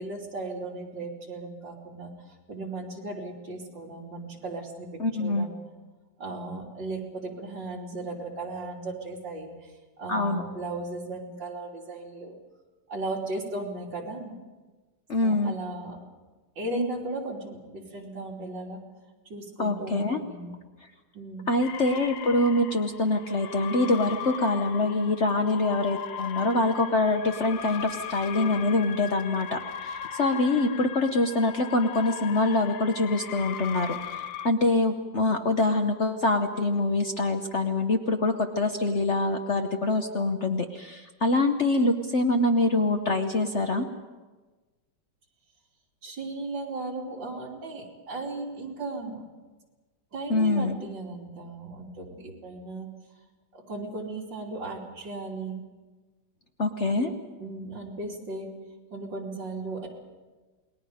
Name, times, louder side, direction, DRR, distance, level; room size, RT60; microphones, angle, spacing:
voice 1, 0.0-2.1 2.5-4.9 5.2-5.6 6.2-9.5 10.0-12.4 12.9-14.4 15.2-16.0 16.6-18.8 19.3-20.6 21.1-21.5 46.0-49.2 50.1-52.9 53.5-55.6 57.4-58.5 58.9-59.9, right 2 dB, 70° right, -2 dB, 4.0 m, -36 dB
voice 2, 5.0-5.5 10.1-10.4 15.1-15.5 19.6-20.2 21.5-43.9 50.3-50.8 56.6-57.1, left 2 dB, 45° left, 5 dB, 1.1 m, -25 dB
sound 1, 21.6-34.5, left 9 dB, 80° left, 1.6 m, -38 dB
28.5 x 21.0 x 5.1 m, 1.3 s
omnidirectional pair, 2.1 m